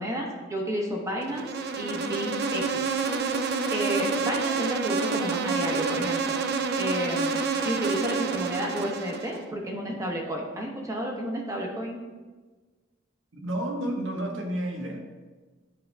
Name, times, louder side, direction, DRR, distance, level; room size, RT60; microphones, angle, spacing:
voice 1, 0.0-1.5 1.8-2.9 3.7-6.3 6.8-12.0, equal, 15° right, 0 dB, 1.0 m, -31 dB
Insect, 1.2-9.4, right 4 dB, 55° right, 0.4 m, -28 dB
voice 2, 13.3-15.0, right 1 dB, 80° right, 1 dB, 1.1 m, -31 dB
10.5 x 4.6 x 2.2 m, 1.3 s
head